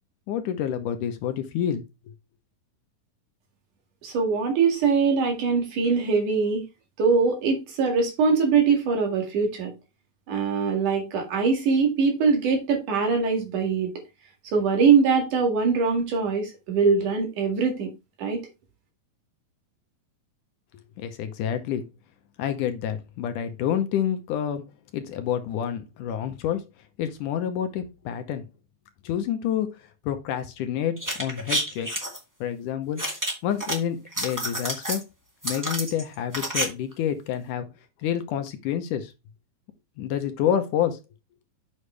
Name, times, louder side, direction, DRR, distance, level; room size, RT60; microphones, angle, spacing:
voice 1, 0.3-1.8 21.0-21.9 22.4-24.7 24.9-26.7 27.0-28.4 29.0-31.9 32.4-33.0 33.4-35.1 35.4-37.7 38.0-39.1 40.0-41.0, left 9 dB, 70° left, 2.3 m, -28 dB
voice 2, 4.0-6.6 7.0-9.7 10.3-13.9 14.5-17.9 18.2-18.4, right 5 dB, 65° right, 3.5 m, -22 dB
sound 1, 31.0-32.2 33.0-33.7 34.1-35.0 35.4-36.6 36.9-37.0, right 1 dB, 10° right, 0.8 m, -29 dB
8.3 x 6.4 x 3.3 m
omnidirectional pair, 4.0 m